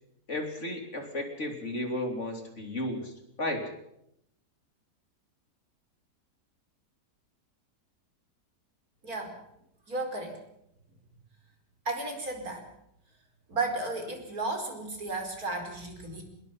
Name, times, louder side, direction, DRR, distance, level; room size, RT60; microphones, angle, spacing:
voice 1, 0.3-3.1 3.4-3.6, left 1 dB, 40° left, 4 dB, 3.6 m, -33 dB
voice 2, 9.0-9.4 9.9-10.4 11.9-12.7 13.5-16.2, right 2 dB, 55° right, 4 dB, 5.2 m, -34 dB
26.0 x 21.5 x 5.7 m, 0.77 s
omnidirectional pair, 1.8 m